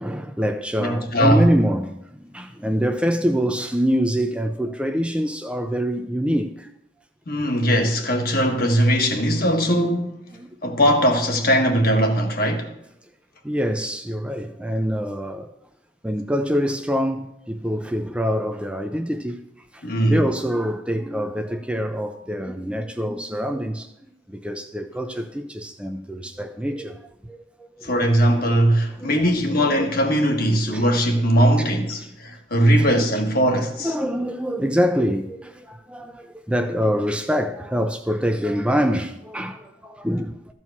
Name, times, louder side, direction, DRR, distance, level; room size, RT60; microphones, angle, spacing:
voice 1, 0.0-6.7 10.4-10.6 13.4-15.5 16.0-19.4 19.7-23.9 24.3-27.9 29.0-29.2 29.6-30.0 30.7-30.9 31.6-31.7 32.0-32.9 33.8-40.5, equal, 5° right, 0.5 m, -25 dB
voice 2, 0.8-1.5 7.3-10.3 10.6-12.7 19.8-20.2 27.8-33.9, equal, 50° left, 1.4 m, -20 dB
13.5 x 4.6 x 7.1 m
head